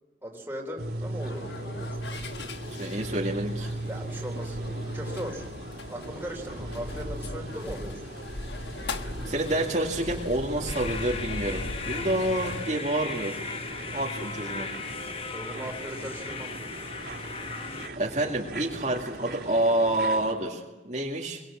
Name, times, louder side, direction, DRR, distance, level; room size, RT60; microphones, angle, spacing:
voice 1, 0.2-2.0 3.9-5.5 5.9-8.0 15.3-16.5, equal, 10° right, 1 dB, 3.5 m, -39 dB
sound 1, 0.8-20.3, right 1 dB, 65° right, 3.3 m, -38 dB
sound 2, 1.2-12.7, left 2 dB, 85° left, 1.4 m, -39 dB
voice 2, 2.8-3.7 9.2-13.4 13.9-14.7 18.0-21.4, right 1 dB, 40° right, -2 dB, 2.2 m, -28 dB
sound 3, 10.7-17.9, left 4 dB, 30° left, 1.0 m, -37 dB
23.0 x 21.5 x 7.5 m, 1.1 s
head